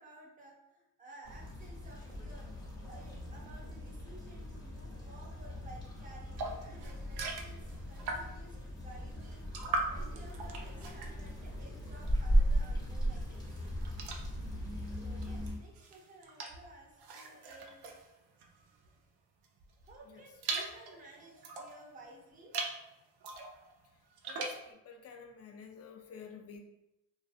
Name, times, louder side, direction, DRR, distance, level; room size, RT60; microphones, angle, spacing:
voice 1, 0.0-2.5 2.8-9.4 9.8-13.7 15.0-17.9 19.8-22.5, right 2 dB, 20° right, -1 dB, 0.6 m, -55 dB
sound 1, 1.2-15.6, equal, 10° left, 0.9 m, -37 dB
sound 2, 6.4-8.5 8.9-12.3 12.7-19.0 19.4-21.8 22.3-22.8 23.2-24.7, right 3 dB, 65° right, 0.5 m, -41 dB
voice 2, 24.3-26.6, left 6 dB, 35° left, 4 dB, 0.4 m, -51 dB
2.4 x 2.3 x 2.4 m, 0.91 s
cardioid pair, 85°, 42 cm